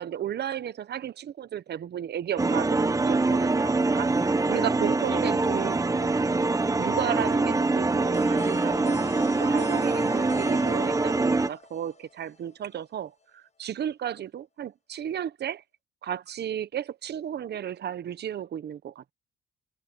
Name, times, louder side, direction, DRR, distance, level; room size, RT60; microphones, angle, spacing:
voice 1, 0.0-6.1 6.8-9.0 9.4-15.6 16.0-19.1, right 10 dB, 55° right, 1.1 m, -34 dB
sound 1, 2.4-11.5, right 3 dB, 15° right, 1.1 m, -24 dB
sound 2, 8.1-12.8, left 5 dB, 35° left, 5.7 m, -44 dB
cardioid pair, 90°, 20 cm